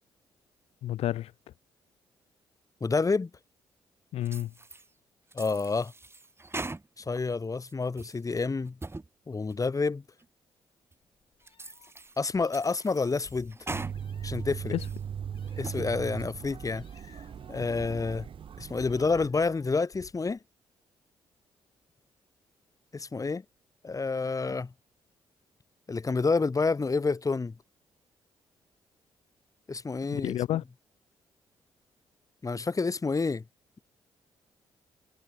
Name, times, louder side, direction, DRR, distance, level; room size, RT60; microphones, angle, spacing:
voice 1, 0.8-1.3 4.1-4.5 14.7-14.9 30.1-30.6, left 13 dB, 75° left, 0.9 m, -30 dB
voice 2, 2.8-3.3 5.3-5.9 7.0-8.8 9.3-10.0 12.2-13.6 14.2-14.8 15.6-16.8 17.5-18.3 18.6-20.4 22.9-23.4 23.8-24.7 25.9-27.6 29.7-30.4 32.4-33.4, left 4 dB, 35° left, 2.3 m, -29 dB
sound 1, 4.3-4.9 5.3-7.2 7.6-8.2 8.7-9.1 9.5-9.6 10.2-10.3 10.9-11.0 11.5-12.2 12.5-14.0 14.4-15.0 15.5-15.9, right 2 dB, 25° right, 5.8 m, -41 dB
Meow, 11.0-20.4, left 7 dB, 55° left, 6.1 m, -54 dB
sound 2, 13.7-19.3, right 8 dB, 55° right, 1.2 m, -39 dB
hypercardioid pair, 50°, 10 cm